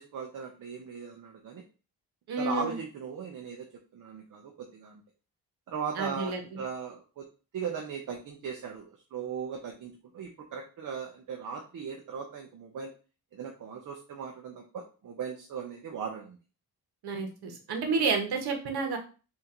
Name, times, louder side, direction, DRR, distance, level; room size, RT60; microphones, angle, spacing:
voice 1, 0.0-1.6 2.4-3.7 3.9-5.0 5.7-7.3 7.5-12.9 13.3-16.4, right 6 dB, 55° right, 1 dB, 0.7 m, -38 dB
voice 2, 2.3-2.8 6.0-6.4 17.0-19.0, right 4 dB, 80° right, 3 dB, 1.2 m, -30 dB
4.3 x 2.8 x 3.8 m, 0.34 s
wide cardioid pair, 150°, 38 cm